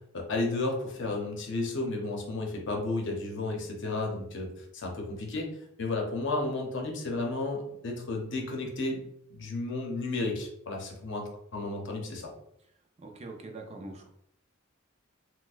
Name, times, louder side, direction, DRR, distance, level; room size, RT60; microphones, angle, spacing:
voice 1, 0.1-5.5 5.8-9.0 9.3-12.3, left 2 dB, 60° left, 1 dB, 0.7 m, -33 dB
voice 2, 13.0-14.1, right 2 dB, 30° right, 2 dB, 0.4 m, -43 dB
4.1 x 2.1 x 2.4 m, 0.74 s
head